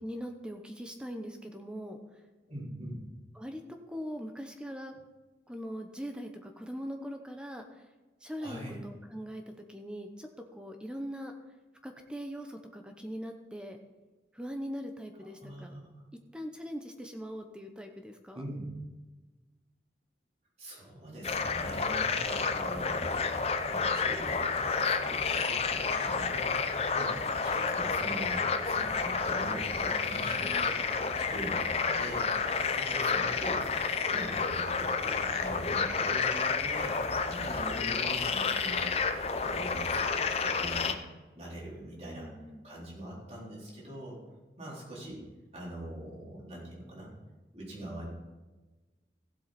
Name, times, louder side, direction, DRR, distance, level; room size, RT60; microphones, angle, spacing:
voice 1, 0.0-2.0 3.3-3.6 3.9-4.9 5.5-7.8 8.2-9.4 9.7-11.3 11.8-13.8 14.3-15.7 16.3-18.4 30.4-30.7 37.8-38.0 42.1-42.6, equal, 5° right, 5 dB, 0.8 m, -41 dB
voice 2, 2.5-3.0 8.4-8.8 15.2-16.0 18.3-18.7 20.6-39.0 39.3-41.0 41.3-42.3 42.6-45.3 45.5-47.1 47.5-48.1, right 1 dB, 35° right, -5 dB, 3.8 m, -43 dB
sound 1, 21.2-40.9, left 5 dB, 35° left, 0.6 m, -30 dB
15.5 x 7.7 x 4.2 m, 1.2 s
head